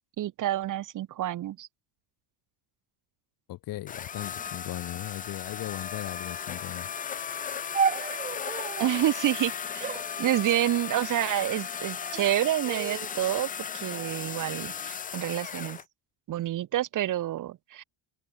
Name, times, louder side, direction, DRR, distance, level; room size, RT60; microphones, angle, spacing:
voice 1, 0.2-1.7 8.8-9.9 10.2-13.5 13.7-15.8 16.3-17.8, right 13 dB, 40° right, 1.6 m, -28 dB
voice 2, 3.5-6.9, left 15 dB, 45° left, 1.7 m, -37 dB
sound 1, 3.9-15.8, left 7 dB, 20° left, 0.6 m, -36 dB
sound 2, 7.7-9.0 9.8-11.0 11.8-12.3 12.6-13.2 13.9-14.9, right 6 dB, 15° right, 1.3 m, -34 dB
cardioid pair, 165°, 46 cm